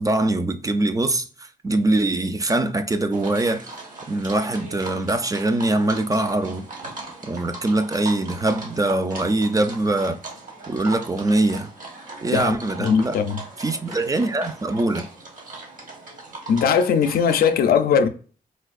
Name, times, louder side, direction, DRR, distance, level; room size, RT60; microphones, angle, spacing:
voice 1, 0.0-3.7 4.1-6.7 7.2-10.2 10.7-11.7 12.2-13.2 13.6-15.1, right 2 dB, 25° right, 0.4 m, -23 dB
sound 1, 3.1-17.6, right 3 dB, 60° right, 1.3 m, -39 dB
voice 2, 12.8-13.4 16.5-18.1, left 7 dB, 90° left, 0.4 m, -19 dB
4.3 x 2.4 x 2.4 m
cardioid pair, 75°, 15 cm